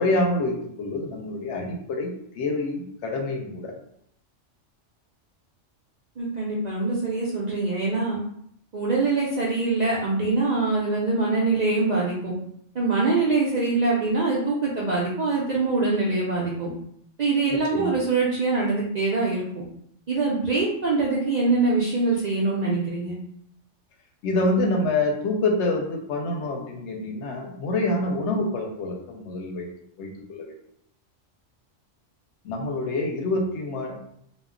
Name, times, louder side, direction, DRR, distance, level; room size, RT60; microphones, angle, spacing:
voice 1, 0.0-3.8 17.7-18.0 24.2-29.7 30.0-30.5 32.4-34.0, left 2 dB, 70° left, 2 dB, 0.8 m, -26 dB
voice 2, 6.2-8.2 8.7-12.3 12.7-16.7 17.2-19.6 20.1-23.2, right 3 dB, 60° right, -5 dB, 0.4 m, -24 dB
2.2 x 2.1 x 3.6 m, 0.70 s
omnidirectional pair, 1.3 m